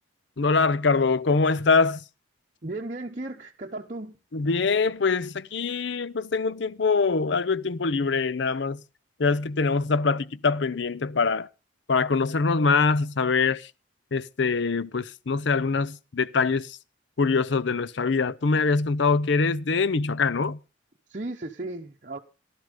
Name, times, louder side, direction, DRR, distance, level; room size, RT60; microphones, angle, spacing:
voice 1, 0.4-2.0 4.3-8.8 9.2-11.5 11.9-13.7 14.1-16.8 17.2-20.6, left 4 dB, 60° left, 0.6 m, -24 dB
voice 2, 2.6-4.2 21.1-22.2, right 2 dB, 40° right, 0.9 m, -35 dB
14.5 x 12.0 x 5.1 m
head